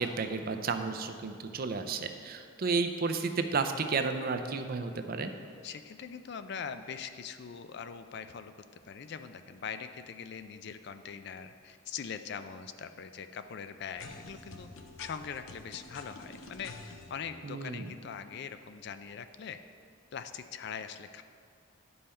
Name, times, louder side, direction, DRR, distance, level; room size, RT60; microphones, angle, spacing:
voice 1, 0.0-5.3 17.4-17.9, right 4 dB, 45° right, 8 dB, 0.5 m, -32 dB
voice 2, 5.6-8.5 8.8-14.7 15.0-19.6 20.1-21.2, left 6 dB, 50° left, 10 dB, 0.4 m, -42 dB
sound 1, 14.0-17.1, left 3 dB, 70° left, 0.8 m, -48 dB
11.0 x 5.5 x 4.3 m, 2.3 s
head